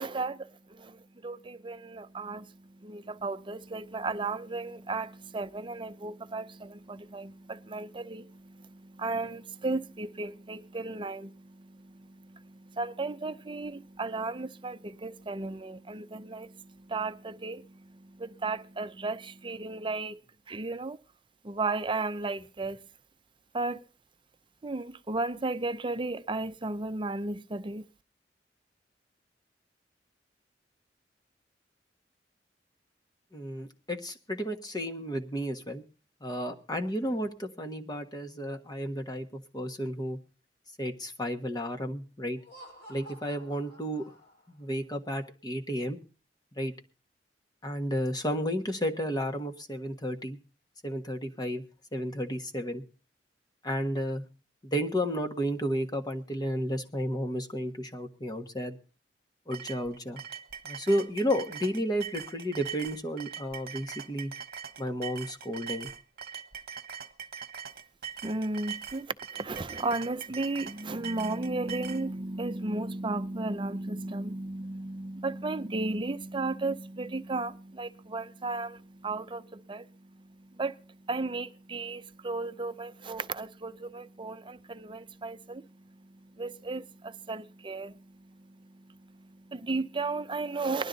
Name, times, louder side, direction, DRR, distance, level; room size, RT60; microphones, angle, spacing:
voice 1, 0.0-20.2 20.5-21.0 21.4-22.8 23.5-23.8 24.6-27.8 68.2-90.9, right 3 dB, 30° right, 0.6 m, -35 dB
voice 2, 33.3-35.8 36.2-40.2 40.8-42.4 42.9-44.1 44.6-46.0 46.6-46.7 47.6-50.4 50.8-51.6 51.9-52.8 53.6-54.2 54.6-58.8 59.5-60.2 60.6-64.3 64.8-65.9, equal, 25° left, 1.4 m, -32 dB
Laughter, 42.3-44.7, equal, 65° left, 4.5 m, -51 dB
sound 1, 59.5-72.0, right 7 dB, 55° right, 1.2 m, -42 dB
19.5 x 12.0 x 4.0 m
head